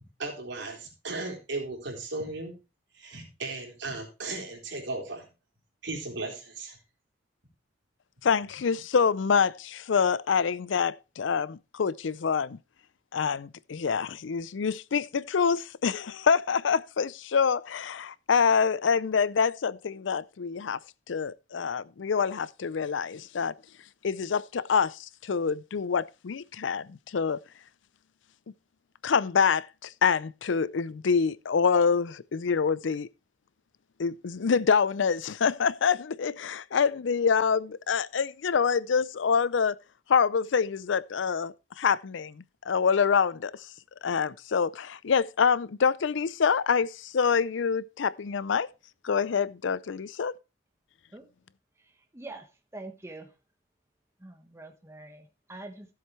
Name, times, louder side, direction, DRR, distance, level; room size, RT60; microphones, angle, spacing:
voice 1, 0.2-2.5 2.9-5.3 5.8-6.8, right 3 dB, 75° right, 3.9 m, -36 dB
voice 2, 8.2-12.6 13.1-20.8 21.1-23.5 24.0-27.4 29.0-33.1 34.0-39.8 40.1-43.5 44.0-48.7 49.0-50.3, left 6 dB, 85° left, 0.5 m, -26 dB
voice 3, 52.1-52.5 52.7-53.3 54.2-55.9, right 2 dB, 15° right, 1.2 m, -44 dB
14.5 x 7.8 x 3.2 m
head